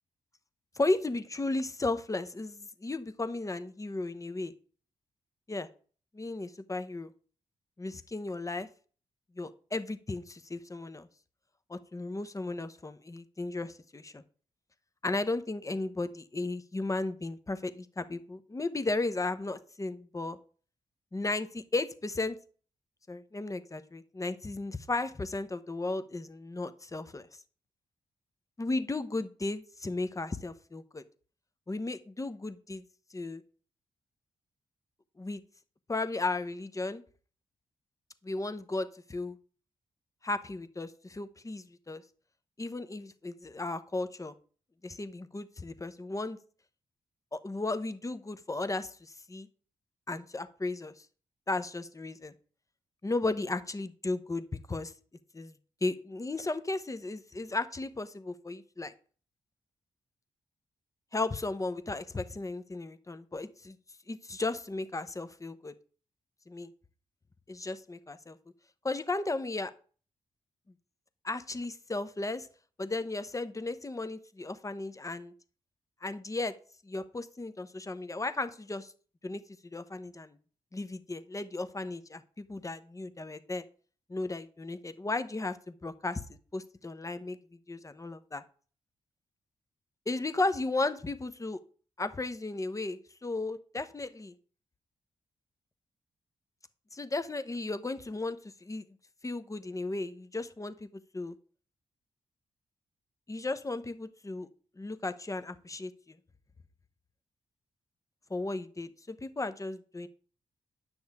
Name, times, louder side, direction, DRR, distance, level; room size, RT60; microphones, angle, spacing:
voice 1, 0.7-4.5 5.5-5.7 6.1-7.1 7.8-8.7 9.4-11.1 11.7-14.2 15.0-20.4 21.1-22.4 23.1-27.3 28.6-31.0 31.7-32.8 33.1-33.4 35.2-35.4 35.9-37.0 38.2-39.4 40.2-42.0 42.6-44.3 44.8-46.4 47.3-49.5 50.1-51.0 51.5-52.3 53.0-54.9 55.3-58.9 61.1-63.8 64.1-65.7 66.5-66.7 67.5-68.4 68.8-69.7 71.2-72.5 72.8-75.3 76.0-76.5 76.8-78.9 79.2-80.4 80.7-83.6 84.1-86.2 86.5-87.4 87.7-88.4 90.1-91.6 92.0-94.3 96.9-98.8 99.2-100.9 101.1-101.3 103.3-104.5 104.8-106.2 108.3-110.1, left 2 dB, 25° left, 11 dB, 0.9 m, -35 dB
9.6 x 6.3 x 3.6 m, 0.41 s
supercardioid pair, 40°, 13 cm